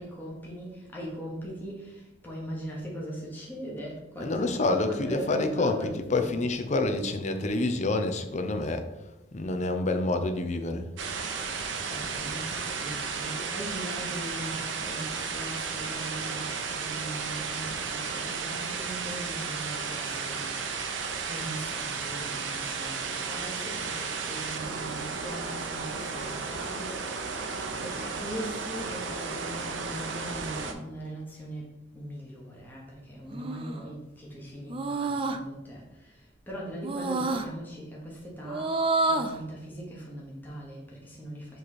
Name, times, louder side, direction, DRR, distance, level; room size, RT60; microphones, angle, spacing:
voice 1, 0.0-6.4 11.6-20.5 21.1-27.2 27.8-31.6 31.9-36.2 36.5-38.8 39.1-41.6, right 1 dB, 10° left, 1.2 m, -40 dB
voice 2, 4.2-8.9 9.3-10.9, left 2 dB, 40° left, 0.6 m, -28 dB
sound 1, 11.0-30.7, right 5 dB, 80° right, 0.7 m, -34 dB
sound 2, 33.3-33.8 34.7-35.4 36.8-37.5 38.4-39.4, right 2 dB, 30° right, 0.4 m, -28 dB
7.0 x 3.2 x 4.2 m
head